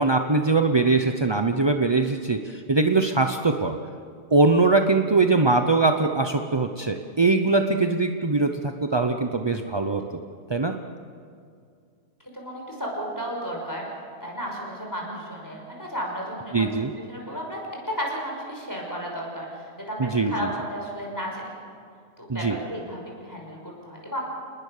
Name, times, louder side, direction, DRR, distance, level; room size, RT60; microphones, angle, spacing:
voice 1, 0.0-3.8 4.3-10.0 10.5-10.8 16.5-16.9 20.0-20.5 22.3-22.6, right 3 dB, 30° right, 5 dB, 0.5 m, -22 dB
voice 2, 12.3-16.7 17.1-17.6 17.9-21.5 22.2-24.2, equal, 10° left, -1 dB, 6.0 m, -33 dB
27.5 x 20.0 x 6.7 m, 2.3 s
omnidirectional pair, 1.7 m